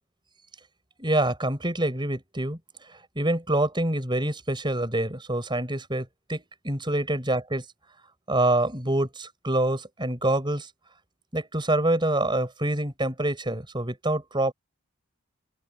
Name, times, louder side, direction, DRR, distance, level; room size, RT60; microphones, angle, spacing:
voice 1, 1.0-2.6 3.2-7.6 8.3-10.7 11.3-14.5, right 1 dB, 20° right, 5.4 m, -26 dB
open air
head